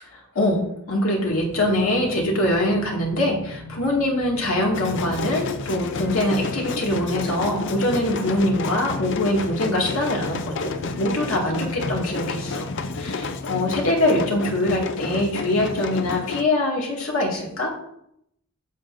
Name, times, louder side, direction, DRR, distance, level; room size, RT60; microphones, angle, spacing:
voice 1, 0.3-12.6 13.0-17.7, left 1 dB, 70° left, -2 dB, 2.2 m, -23 dB
sound 1, 1.2-13.2, left 1 dB, 85° right, 1.5 m, -41 dB
sound 2, 4.7-16.4, left 3 dB, 55° left, 0.5 m, -30 dB
8.9 x 7.5 x 2.6 m, 0.75 s
head